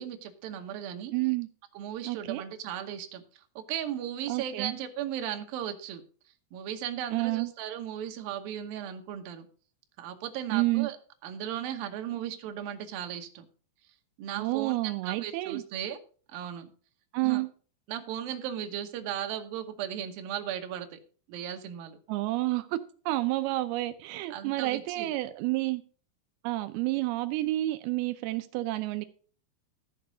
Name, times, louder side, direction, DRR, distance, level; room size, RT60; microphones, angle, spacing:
voice 1, 0.0-1.1 1.7-3.2 3.6-6.0 6.5-9.5 10.0-11.0 11.2-13.5 14.2-16.0 16.3-16.7 17.2-17.4 17.9-21.0 21.3-22.0 24.3-25.1, right 10 dB, 70° right, 6 dB, 2.4 m, -36 dB
voice 2, 1.1-1.5 2.1-2.4 4.3-4.7 7.1-7.5 10.5-10.9 14.3-15.6 17.1-17.5 22.1-22.8 23.1-25.8 26.4-29.1, right 19 dB, 85° right, 9 dB, 2.2 m, -29 dB
13.0 x 6.7 x 5.0 m, 0.41 s
omnidirectional pair, 5.1 m